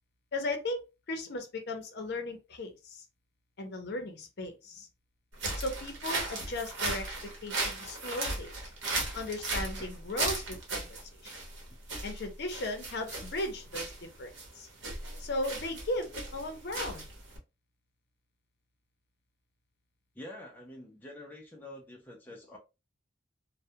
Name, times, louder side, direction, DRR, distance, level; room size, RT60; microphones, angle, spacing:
voice 1, 0.3-0.8 1.1-3.0 3.6-4.9 5.6-8.5 9.1-11.3 12.0-14.7 15.2-17.0, left 2 dB, 55° left, 0.6 m, -37 dB
sound 1, 5.3-17.4, right 2 dB, 60° right, 0.9 m, -36 dB
voice 2, 20.2-22.6, left 1 dB, 10° left, 0.4 m, -47 dB
2.2 x 2.1 x 2.7 m
head